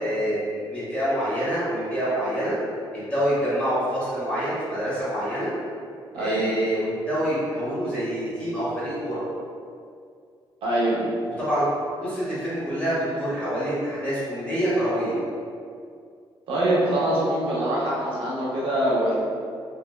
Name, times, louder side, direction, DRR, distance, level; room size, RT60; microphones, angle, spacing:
voice 1, 0.0-2.6 2.9-5.5 6.1-9.2 11.2-11.6 12.0-15.2, equal, 15° left, -11 dB, 1.4 m, -26 dB
voice 2, 6.1-6.5 10.6-11.0 16.5-19.1, right 1 dB, 80° right, -6 dB, 0.7 m, -23 dB
2.7 x 2.5 x 2.2 m, 2.3 s
cardioid pair, 95°, 9 cm